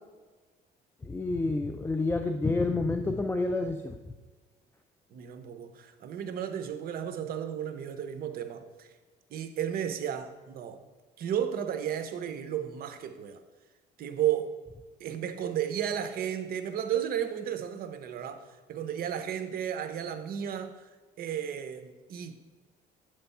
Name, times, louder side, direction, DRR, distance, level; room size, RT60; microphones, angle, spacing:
voice 1, 1.0-4.0, left 3 dB, 15° left, 5 dB, 0.4 m, -29 dB
voice 2, 5.1-8.9 9.3-10.8 11.2-13.4 14.0-14.6 15.0-20.9 21.2-22.5, right 9 dB, 60° right, 9 dB, 0.7 m, -33 dB
7.8 x 3.4 x 5.4 m, 1.3 s
cardioid pair, 110°, 17 cm